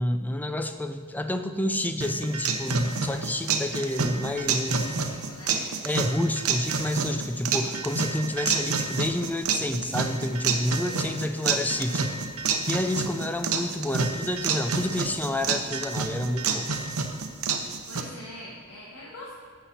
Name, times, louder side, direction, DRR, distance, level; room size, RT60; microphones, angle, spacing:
voice 1, 0.0-4.9 5.8-12.1 12.7-16.7, left 1 dB, 10° left, 8 dB, 0.5 m, -29 dB
sound 1, 2.0-18.0, right 5 dB, 75° right, 0.8 m, -29 dB
voice 2, 4.7-5.7 10.8-12.0 17.9-19.3, left 1 dB, 85° left, -5 dB, 1.5 m, -43 dB
11.5 x 7.5 x 4.2 m, 2.1 s
head